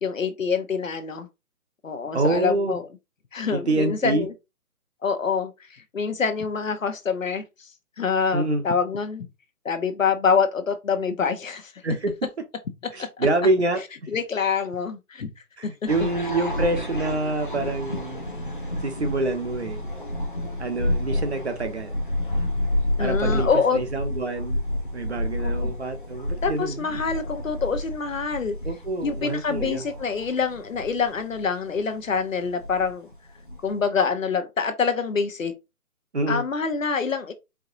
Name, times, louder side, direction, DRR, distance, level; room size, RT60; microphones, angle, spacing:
voice 1, 0.0-1.3 1.8-2.8 3.3-4.3 5.0-7.4 8.0-9.3 9.6-11.7 13.0-13.3 14.1-15.3 15.6-16.1 23.0-23.8 25.4-25.7 26.4-28.6 29.0-33.1 33.6-35.5 36.3-37.3, left 5 dB, 60° left, 0.9 m, -26 dB
voice 2, 2.1-2.8 3.5-4.3 8.3-8.6 11.8-12.1 12.9-13.8 15.6-18.3 18.8-19.8 20.6-22.0 23.0-24.6 24.9-27.0 28.6-29.9 36.1-36.4, right 2 dB, 45° right, 0.9 m, -26 dB
sound 1, 15.9-33.8, left 1 dB, 35° left, 0.6 m, -30 dB
4.7 x 2.8 x 3.8 m
hypercardioid pair, 180°, 45 cm